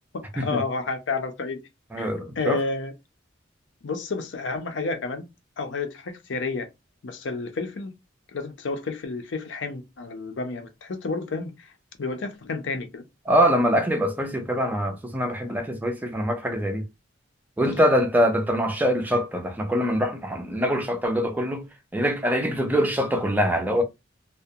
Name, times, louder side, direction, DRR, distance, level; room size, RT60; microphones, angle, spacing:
voice 1, 0.1-1.6 2.0-2.1 2.4-2.9 3.8-5.3 5.6-6.7 7.0-7.9 8.3-11.7 12.0-13.0, left 3 dB, 70° left, 0.5 m, -30 dB
voice 2, 1.9-2.6 13.3-16.8 17.6-21.6 21.9-23.8, equal, 10° right, 0.4 m, -24 dB
2.3 x 2.1 x 2.7 m
head